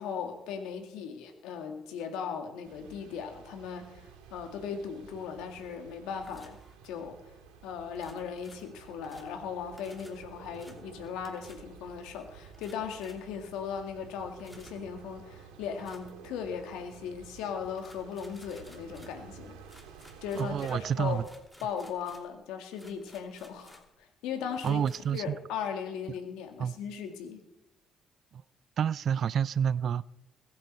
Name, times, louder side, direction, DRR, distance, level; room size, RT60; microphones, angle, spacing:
voice 1, 0.0-6.6 6.8-7.2 7.6-19.6 20.2-21.2 21.6-24.8 25.1-27.4, left 7 dB, 85° left, 2.1 m, -38 dB
sound 1, 2.6-21.3, right 7 dB, 90° right, 3.1 m, -52 dB
sound 2, 6.2-7.1 7.9-9.4 9.8-10.2 10.5-10.8 11.2-11.6 12.5-13.3 14.4-14.8 15.8-16.3 17.8-19.2 19.6-22.4 22.7-24.0 24.5-25.2, equal, 5° left, 2.7 m, -57 dB
voice 2, 20.4-21.2 24.6-25.4 26.6-26.7 28.3-28.4 28.8-30.0, right 8 dB, 60° right, 0.4 m, -29 dB
21.5 x 8.6 x 4.5 m
supercardioid pair, 65°, 0 cm